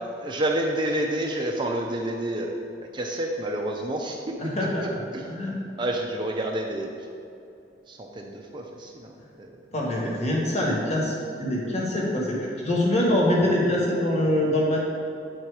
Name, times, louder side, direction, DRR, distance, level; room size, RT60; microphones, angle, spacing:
voice 1, 0.2-2.6 2.9-4.2 5.1-5.3 5.8-6.9 7.9-9.5, right 1 dB, 25° right, 1 dB, 0.5 m, -29 dB
voice 2, 4.4-4.8 5.3-5.5 9.7-14.8, left 1 dB, 40° left, -3 dB, 1.4 m, -24 dB
7.9 x 4.4 x 4.7 m, 2.6 s
head